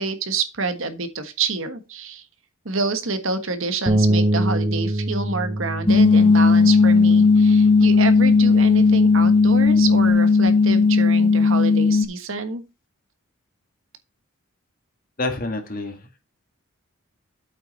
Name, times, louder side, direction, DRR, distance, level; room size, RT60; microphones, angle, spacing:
voice 1, 0.0-2.2 2.6-12.6, right 4 dB, 65° right, 1.3 m, -27 dB
Bass guitar, 3.9-10.1, right 1 dB, 20° right, 0.8 m, -26 dB
sound 1, 5.9-12.1, left 4 dB, 25° left, 0.6 m, -15 dB
voice 2, 15.2-16.2, left 2 dB, 40° left, 1.9 m, -28 dB
8.4 x 6.1 x 4.2 m
head